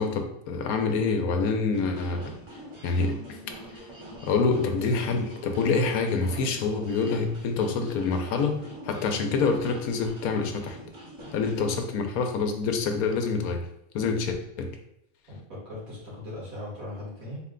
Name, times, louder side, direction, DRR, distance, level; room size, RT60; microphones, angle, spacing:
voice 1, 0.0-2.3 2.8-3.4 4.2-10.8 11.3-13.6 13.9-14.7, left 4 dB, 85° left, 5 dB, 1.1 m, -26 dB
sound 1, 1.7-11.7, equal, 35° right, 0.5 m, -44 dB
voice 2, 15.3-17.4, left 1 dB, 75° right, -7 dB, 2.2 m, -39 dB
4.3 x 2.2 x 3.7 m, 0.80 s
omnidirectional pair, 1.5 m